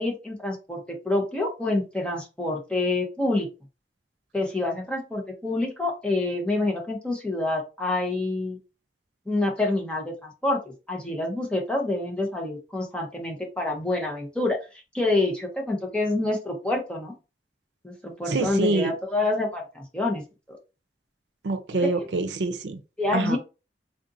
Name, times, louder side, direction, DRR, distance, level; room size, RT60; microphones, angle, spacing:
voice 1, 0.0-3.5 4.3-8.6 9.3-14.6 14.9-17.1 17.8-20.6 21.8-21.9 23.0-23.4, left 2 dB, 5° left, 0.7 m, -27 dB
voice 2, 18.3-18.9 21.4-22.8 23.1-23.4, right 3 dB, 80° right, 0.5 m, -25 dB
3.6 x 2.5 x 2.6 m
head